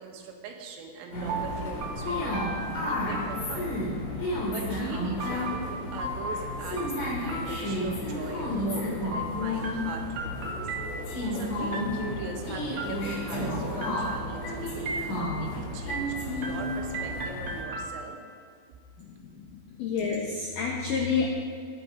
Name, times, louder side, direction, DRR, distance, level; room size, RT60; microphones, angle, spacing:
voice 1, 0.0-2.4 2.9-3.8 4.5-10.6 11.3-18.2, right 5 dB, 85° right, 2 dB, 4.2 m, -41 dB
sound 1, 1.1-17.6, left 1 dB, 40° left, 4.1 m, -32 dB
sound 2, 1.3-4.0 5.2-8.2 9.1-11.3 11.7-12.3 12.8-13.4 13.8-14.4 14.9-15.5 15.9-18.4, right 2 dB, 70° right, 1.8 m, -37 dB
voice 2, 19.0-19.5 19.7-21.3, left 5 dB, 90° left, -1 dB, 1.9 m, -29 dB
19.0 x 8.7 x 5.2 m, 2.1 s
omnidirectional pair, 5.9 m